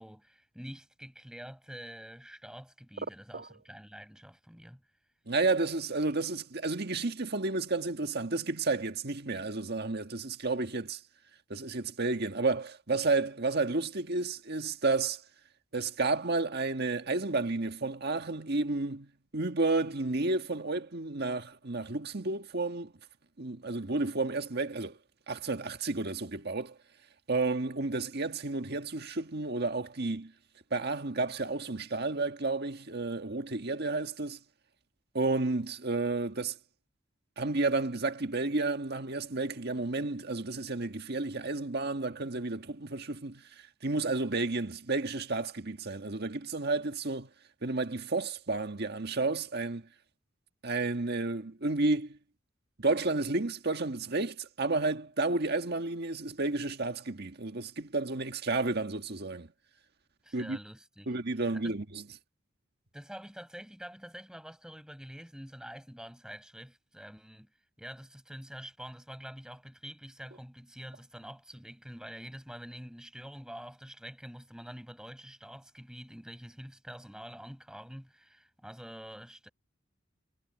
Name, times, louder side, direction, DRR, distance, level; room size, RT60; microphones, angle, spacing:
voice 1, 0.0-4.8 60.2-61.7 62.9-67.5 67.8-79.5, equal, 5° right, 6.2 m, -47 dB
voice 2, 5.3-11.0 11.5-15.2 15.7-22.9 23.4-25.0 25.3-26.7 27.3-30.3 30.7-34.4 35.1-36.5 37.4-43.4 43.8-47.3 47.6-49.9 50.6-52.2 52.8-59.5 60.3-60.6 61.1-62.0, right 3 dB, 55° right, 1.6 m, -31 dB
head